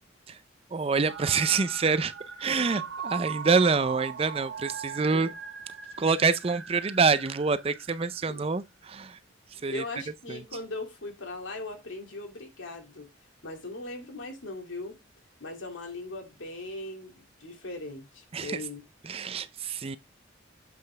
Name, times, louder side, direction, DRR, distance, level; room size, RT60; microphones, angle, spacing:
voice 1, 0.7-2.1 2.4-5.3 6.0-9.2 9.6-9.8 10.3-10.4 18.3-18.7 19.0-20.0, right 4 dB, 30° right, 0.4 m, -26 dB
sound 1, 1.0-8.3, right 6 dB, 70° right, 1.0 m, -40 dB
voice 2, 9.7-13.1 13.4-15.0 15.4-18.8, left 2 dB, 85° left, 2.3 m, -39 dB
7.7 x 5.6 x 3.2 m
head